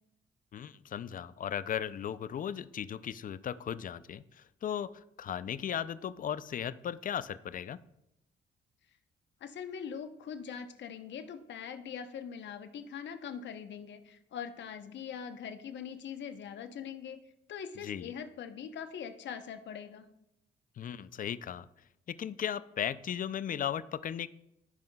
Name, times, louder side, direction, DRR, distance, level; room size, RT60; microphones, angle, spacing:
voice 1, 0.5-7.8 17.8-18.1 20.8-21.7 22.1-24.3, left 9 dB, 45° left, 16 dB, 0.4 m, -36 dB
voice 2, 9.4-17.2 17.5-20.1, left 7 dB, 65° left, 8 dB, 0.8 m, -42 dB
15.5 x 5.5 x 2.3 m, 0.83 s
cardioid pair, 90°, 20 cm